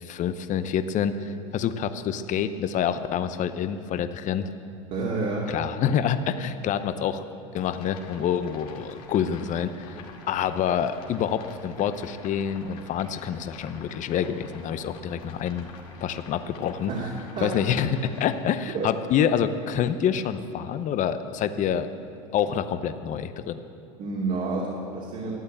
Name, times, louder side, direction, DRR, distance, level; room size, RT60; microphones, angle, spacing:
voice 1, 0.0-4.5 5.5-7.2 7.5-10.0 10.3-15.7 16.0-16.9 17.4-21.9 22.3-23.6, left 8 dB, 40° left, 11 dB, 0.7 m, -27 dB
voice 2, 4.9-5.5 16.9-17.6 18.7-18.9 24.0-25.3, right 3 dB, 45° right, -4 dB, 2.5 m, -29 dB
sound 1, 7.5-18.3, left 4 dB, 80° left, 2.3 m, -47 dB
13.0 x 8.9 x 8.7 m, 2.6 s
hypercardioid pair, 95°, 19 cm